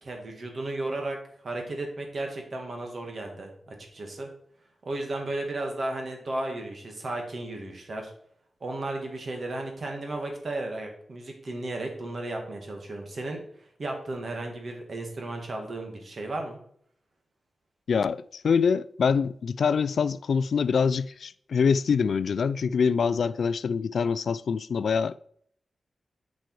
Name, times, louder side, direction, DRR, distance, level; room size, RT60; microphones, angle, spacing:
voice 1, 0.0-1.2 1.4-4.3 4.9-8.1 8.6-13.4 13.8-16.6, right 2 dB, 55° right, 2.0 m, -34 dB
voice 2, 17.9-25.2, left 6 dB, 80° left, 0.3 m, -25 dB
9.0 x 5.3 x 4.8 m
wide cardioid pair, 100°, 0 cm